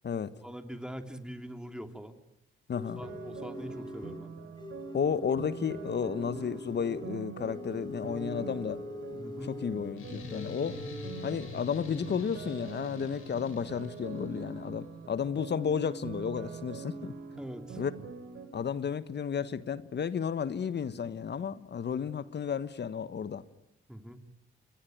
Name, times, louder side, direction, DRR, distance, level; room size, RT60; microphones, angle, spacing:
voice 1, 0.4-2.2 3.0-4.5 9.1-9.6 17.4-17.8 23.9-24.2, equal, 5° right, 3.2 m, -43 dB
voice 2, 2.7-3.0 4.9-8.8 9.4-10.8 11.2-17.1 17.8-17.9 18.5-23.4, left 7 dB, 55° left, 1.3 m, -32 dB
sound 1, 2.7-4.3 4.6-10.0 10.3-11.4, left 2 dB, 20° left, 1.8 m, -44 dB
sound 2, 2.9-18.5, right 5 dB, 70° right, 4.4 m, -44 dB
sound 3, 10.0-14.4, left 5 dB, 75° left, 7.2 m, -46 dB
28.0 x 22.0 x 9.4 m
supercardioid pair, 60°, 21 cm